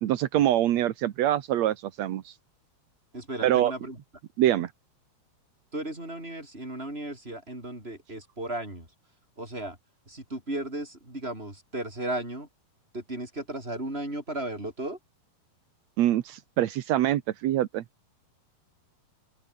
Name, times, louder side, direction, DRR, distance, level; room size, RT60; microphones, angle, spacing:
voice 1, 0.0-2.3 3.4-3.7 4.4-4.7 16.0-17.8, right 12 dB, 75° right, 1.7 m, -25 dB
voice 2, 3.1-4.0 5.7-8.9 9.4-9.8 10.1-12.5 12.9-15.0, right 1 dB, 15° right, 8.1 m, -35 dB
open air
omnidirectional pair, 4.5 m